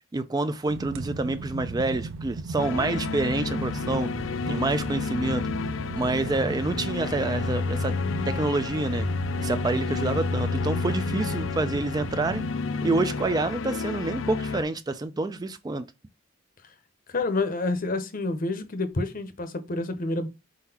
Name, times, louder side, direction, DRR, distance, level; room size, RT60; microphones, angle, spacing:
voice 1, 0.1-4.1 4.5-5.5 5.9-7.9 8.3-9.1 9.4-12.4 12.8-15.9, right 2 dB, 20° right, 0.3 m, -27 dB
sound 1, 0.7-12.5, right 3 dB, 85° right, 0.5 m, -36 dB
sound 2, 2.6-14.6, left 4 dB, 75° left, 0.4 m, -30 dB
voice 2, 17.1-20.3, left 2 dB, 45° left, 0.7 m, -28 dB
4.3 x 3.9 x 2.8 m
head